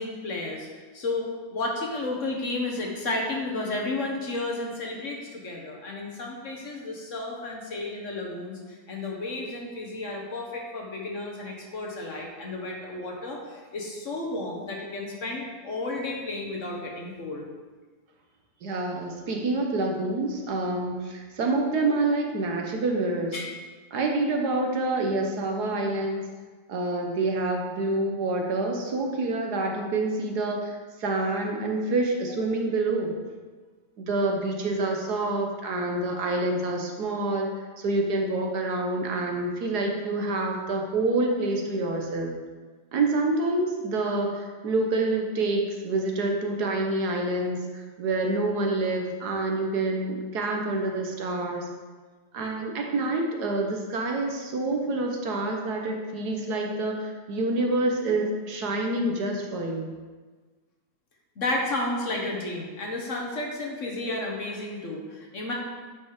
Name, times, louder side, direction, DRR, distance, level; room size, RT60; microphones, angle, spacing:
voice 1, 0.0-17.4 23.3-23.4 61.4-65.5, left 2 dB, 50° left, -1 dB, 1.6 m, -32 dB
voice 2, 18.6-23.3 23.9-26.2 26.7-33.1 34.0-42.3 42.9-51.6 52.3-59.9, right 2 dB, 75° right, 1 dB, 1.6 m, -27 dB
9.4 x 5.3 x 4.9 m, 1.4 s
omnidirectional pair, 1.7 m